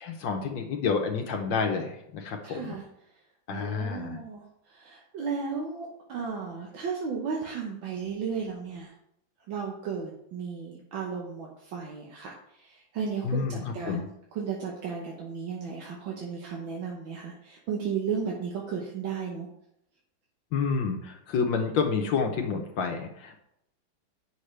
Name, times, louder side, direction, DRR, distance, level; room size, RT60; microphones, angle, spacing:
voice 1, 0.0-2.7 3.5-4.2 13.2-14.1 20.5-23.4, left 5 dB, 75° left, 3 dB, 1.5 m, -29 dB
voice 2, 2.4-2.8 3.5-8.9 9.5-19.5, right 6 dB, 80° right, -2 dB, 1.8 m, -34 dB
8.1 x 6.5 x 3.3 m, 0.77 s
omnidirectional pair, 2.1 m